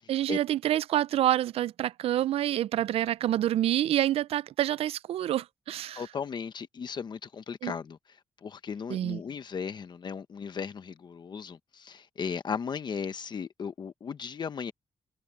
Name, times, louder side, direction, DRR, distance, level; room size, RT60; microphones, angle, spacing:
voice 1, 0.1-6.0 7.6-7.7 8.9-9.2, right 12 dB, 80° right, 0.4 m, -27 dB
voice 2, 5.9-8.0 8.4-14.7, left 6 dB, 50° left, 1.0 m, -36 dB
cardioid pair, 115°, 10 cm